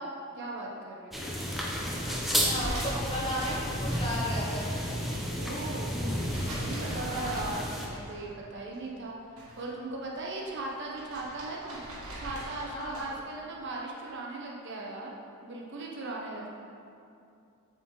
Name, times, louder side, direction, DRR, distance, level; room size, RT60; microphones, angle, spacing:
voice 1, 0.3-1.2 5.2-6.1 6.3-9.2 9.6-15.1 15.4-16.5, right 2 dB, 55° right, -2 dB, 0.7 m, -38 dB
sound 1, 1.1-7.9, equal, ahead, 0.5 m, -32 dB
voice 2, 2.4-4.7 6.9-7.5 12.7-13.1, equal, 25° left, -7 dB, 1.4 m, -35 dB
sound 2, 2.6-4.6 4.9-8.4 8.7-9.7 10.0-13.2, right 1 dB, 70° right, 1.5 m, -43 dB
7.2 x 3.9 x 3.8 m, 2.5 s
head